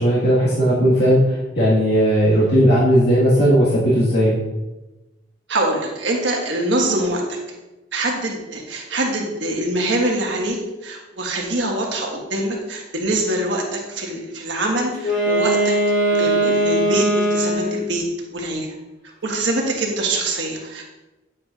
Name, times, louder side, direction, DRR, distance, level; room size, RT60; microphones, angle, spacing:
voice 1, 0.0-4.4, equal, 60° left, -7 dB, 1.7 m, -16 dB
voice 2, 5.5-7.4 7.9-10.6 10.8-15.8 16.1-18.0 18.3-18.7 19.2-20.8, right 1 dB, 65° right, -1 dB, 1.5 m, -24 dB
Wind instrument woodwind instrument, 14.9-17.9, right 1 dB, 90° left, 2.7 m, -19 dB
9.2 x 7.3 x 2.4 m, 1.0 s
head